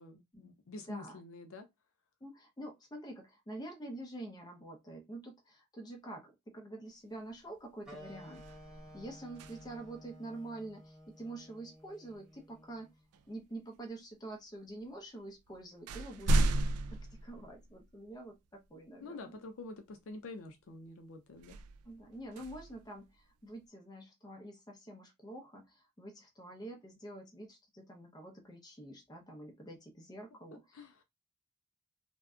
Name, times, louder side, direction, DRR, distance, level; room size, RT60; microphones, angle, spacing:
voice 1, 0.0-1.7 19.0-21.6 30.7-31.0, left 3 dB, 65° left, 0.5 m, -47 dB
voice 2, 0.9-1.2 2.2-8.4 8.7-12.9 13.3-16.6 16.9-19.4 21.8-31.0, right 1 dB, 20° left, 0.6 m, -47 dB
sound 1, 7.3-7.5 7.9-10.0 12.1-12.3 13.1-13.9 14.8-14.9 15.3-18.1 18.6-18.7 21.3-23.5, right 1 dB, 85° right, 0.3 m, -35 dB
sound 2, 7.8-13.0, equal, 5° right, 0.9 m, -54 dB
2.6 x 2.1 x 2.3 m
head